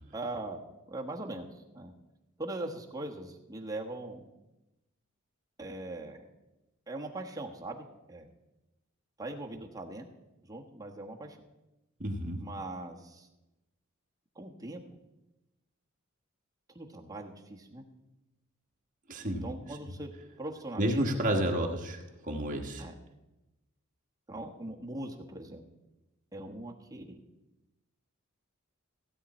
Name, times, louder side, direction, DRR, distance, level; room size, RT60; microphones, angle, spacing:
voice 1, 0.1-0.6 0.9-1.9 2.4-4.2 5.6-6.2 6.9-8.3 9.2-10.1 10.5-11.4 12.4-13.3 14.3-14.8 16.7-17.8 19.4-20.1 20.4-21.1 22.8-22.9 24.3-25.6 26.3-27.2, right 2 dB, 15° right, 0 dB, 1.2 m, -40 dB
voice 2, 12.0-12.4 19.1-19.5 20.8-22.8, right 1 dB, 40° right, 1 dB, 1.5 m, -31 dB
16.0 x 8.3 x 4.3 m, 0.99 s
head